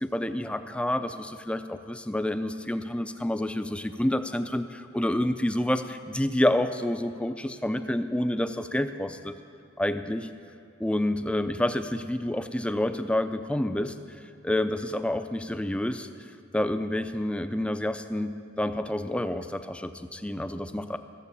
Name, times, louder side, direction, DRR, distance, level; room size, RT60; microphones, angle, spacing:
voice 1, 0.0-9.4 9.8-10.3 10.8-13.9 14.4-16.1 16.5-21.0, left 1 dB, 5° left, 10 dB, 0.4 m, -28 dB
15.0 x 7.4 x 6.9 m, 2.6 s
head